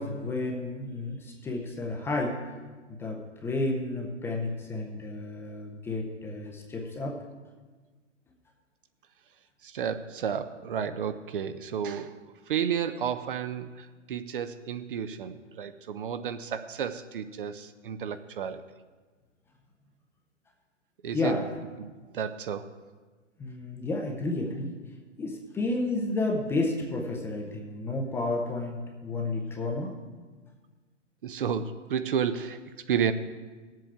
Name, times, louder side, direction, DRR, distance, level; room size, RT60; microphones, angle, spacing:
voice 1, 0.0-2.4 2.9-7.2 21.1-21.5 23.4-24.7 25.2-30.0, left 2 dB, 5° left, 1 dB, 0.6 m, -31 dB
voice 2, 9.6-12.2 12.5-18.6 21.0-21.4 21.8-22.7 31.2-33.1, right 8 dB, 45° right, 10 dB, 0.6 m, -32 dB
19.0 x 7.6 x 3.5 m, 1.4 s
figure-of-eight pair, 120°, 37 cm